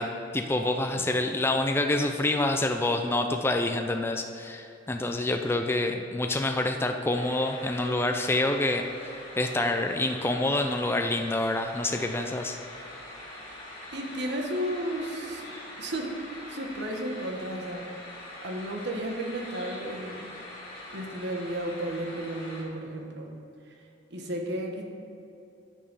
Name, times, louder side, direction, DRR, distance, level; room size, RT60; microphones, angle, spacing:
voice 1, 0.0-8.9 9.4-12.6, left 2 dB, 10° left, 4 dB, 0.4 m, -27 dB
sound 1, 7.1-22.6, left 1 dB, 30° left, 2.3 m, -43 dB
voice 2, 13.9-15.4 15.8-16.1 16.5-17.9 18.4-20.2 20.9-23.3 24.1-24.8, right 1 dB, 60° right, 2 dB, 1.2 m, -33 dB
8.8 x 6.7 x 5.3 m, 2.8 s
head